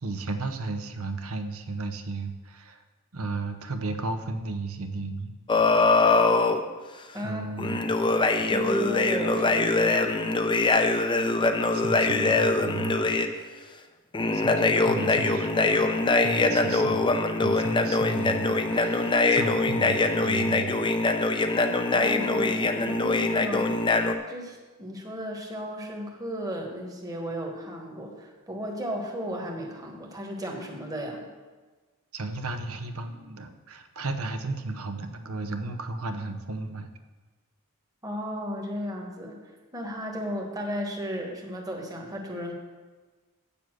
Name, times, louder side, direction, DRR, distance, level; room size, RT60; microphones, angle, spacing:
voice 1, 0.0-2.8 3.1-5.3 7.2-7.8 8.4-8.5 11.7-13.2 14.3-20.8 32.1-36.9, right 3 dB, 70° right, 7 dB, 0.8 m, -34 dB
sound 1, 5.5-6.6 7.6-13.3 14.1-24.1, left 3 dB, 20° left, 0.5 m, -23 dB
voice 2, 8.5-10.0 21.9-23.9 24.3-31.3 38.0-39.4 39.7-42.5, equal, 15° right, 1 dB, 1.4 m, -34 dB
8.3 x 7.0 x 6.2 m, 1.3 s
head